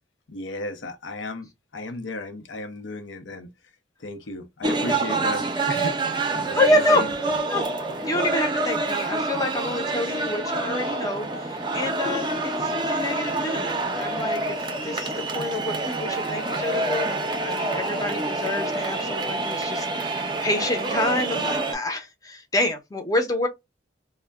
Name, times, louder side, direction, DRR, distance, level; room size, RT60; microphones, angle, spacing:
voice 1, 0.3-3.5 4.0-7.1, left 2 dB, 85° left, 0.6 m, -34 dB
sound 1, 4.6-21.8, right 2 dB, 25° right, 0.5 m, -27 dB
voice 2, 6.6-7.1 7.5-7.7 8.0-23.5, left 1 dB, 20° left, 0.6 m, -27 dB
2.2 x 2.1 x 3.4 m
head